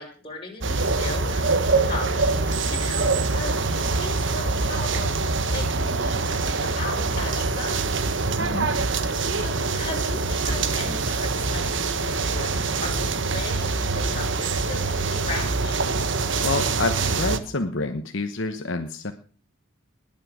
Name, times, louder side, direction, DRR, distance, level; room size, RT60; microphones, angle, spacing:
voice 1, 0.0-1.4 1.9-7.8 9.0-15.8, left 2 dB, 25° left, 0 dB, 5.1 m, -37 dB
sound 1, 0.6-17.4, right 3 dB, 60° right, 1.2 m, -24 dB
voice 2, 8.4-8.7 16.4-19.1, left 3 dB, 60° left, 6 dB, 1.1 m, -28 dB
20.5 x 7.7 x 6.2 m, 0.42 s
head